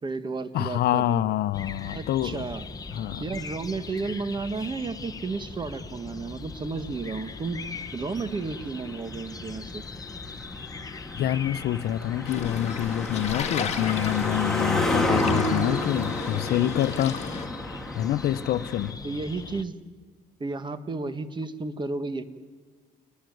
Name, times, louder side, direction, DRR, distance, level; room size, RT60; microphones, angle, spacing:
voice 1, 0.0-1.2 1.9-2.6 3.2-7.7 7.9-9.8 15.1-15.3 19.0-19.7 20.4-22.2, right 3 dB, 25° right, 1.6 m, -32 dB
voice 2, 0.5-2.4 2.9-3.2 11.1-17.2 17.9-19.0, left 13 dB, 70° left, 0.8 m, -26 dB
sound 1, 1.5-19.6, left 4 dB, 20° left, 1.2 m, -40 dB
Car passing by, 7.7-18.9, left 1 dB, 5° left, 2.6 m, -31 dB
sound 2, 12.2-17.5, left 6 dB, 40° left, 2.3 m, -35 dB
27.5 x 20.0 x 9.4 m
cardioid pair, 110°, 17 cm